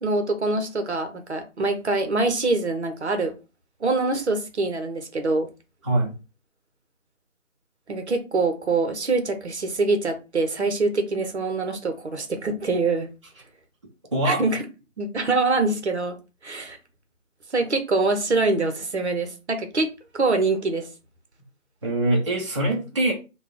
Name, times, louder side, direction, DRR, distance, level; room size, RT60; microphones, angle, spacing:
voice 1, 0.0-3.3 3.8-5.5 7.9-13.1 14.2-14.6 15.0-16.2 16.4-16.8 17.5-19.9 20.1-20.9, right 3 dB, 55° right, 0.9 m, -24 dB
voice 2, 5.8-6.1 14.1-14.4 21.8-23.1, right 1 dB, 25° right, 0.8 m, -23 dB
3.5 x 2.3 x 3.2 m
figure-of-eight pair, 160°, 40 cm